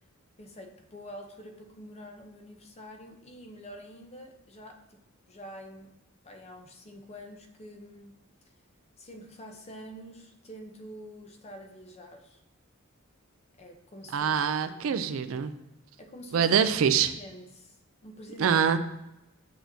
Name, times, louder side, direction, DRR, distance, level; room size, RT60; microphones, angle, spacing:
voice 1, 0.4-5.0 5.3-5.9 6.2-8.1 9.0-12.4 13.6-14.3 14.7-15.4 16.0-16.5 17.2-18.5, equal, 30° left, 4 dB, 0.7 m, -47 dB
voice 2, 14.1-15.5 16.3-17.1 18.4-18.8, right 7 dB, 70° right, 11 dB, 0.4 m, -24 dB
6.1 x 5.9 x 2.7 m, 0.89 s
head